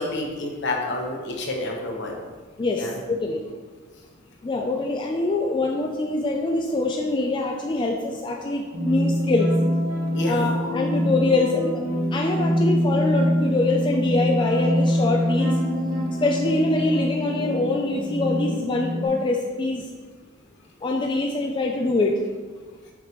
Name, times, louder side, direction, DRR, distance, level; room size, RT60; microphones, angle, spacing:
voice 1, 0.0-2.2 2.7-2.9 10.1-10.4, left 2 dB, 60° left, 0 dB, 1.1 m, -28 dB
voice 2, 2.6-3.4 4.4-9.5 10.2-11.8 12.1-15.6 16.2-19.8 20.8-22.2, left 2 dB, 25° left, 1 dB, 0.3 m, -24 dB
sound 1, 8.7-19.1, equal, 70° right, 1.7 m, -24 dB
5.8 x 5.7 x 3.1 m, 1.4 s
head